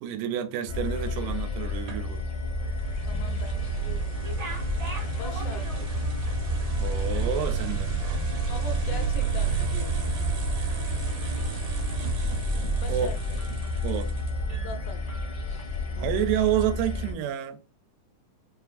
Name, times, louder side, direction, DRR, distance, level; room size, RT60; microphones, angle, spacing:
voice 1, 0.0-2.3 6.8-8.0 12.9-13.1 13.8-14.1 16.0-17.6, right 10 dB, 85° right, 2.1 m, -29 dB
sound 1, 0.7-17.1, left 3 dB, 65° left, 1.1 m, -31 dB
sound 2, 1.9-14.6, right 7 dB, 65° right, 1.4 m, -31 dB
voice 2, 3.1-4.5 5.2-6.0 8.5-10.1 12.8-13.2 14.5-15.1, left 3 dB, 80° left, 2.0 m, -41 dB
sound 3, 4.1-6.1 6.5-6.6 7.0-9.1 9.5-9.8 10.1-10.8 11.2-11.9 12.3-12.5 12.9-13.0 13.4-14.2 14.5-15.6, right 2 dB, 30° right, 0.7 m, -45 dB
5.5 x 2.4 x 2.4 m
omnidirectional pair, 3.6 m